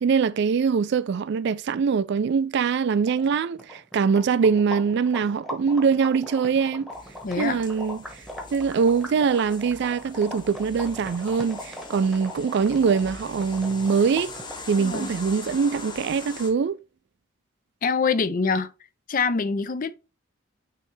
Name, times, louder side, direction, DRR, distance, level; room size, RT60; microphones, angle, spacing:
voice 1, 0.0-6.9 7.4-8.2 8.5-14.3 14.7-16.8, right 5 dB, 55° right, 0.3 m, -23 dB
sound 1, 3.1-14.7, left 1 dB, ahead, 1.1 m, -40 dB
sound 2, 6.9-16.5, left 2 dB, 20° left, 0.9 m, -42 dB
voice 2, 7.2-7.6 14.8-15.1 17.8-18.7 19.1-19.9, left 5 dB, 40° left, 0.5 m, -24 dB
9.3 x 3.2 x 3.2 m
head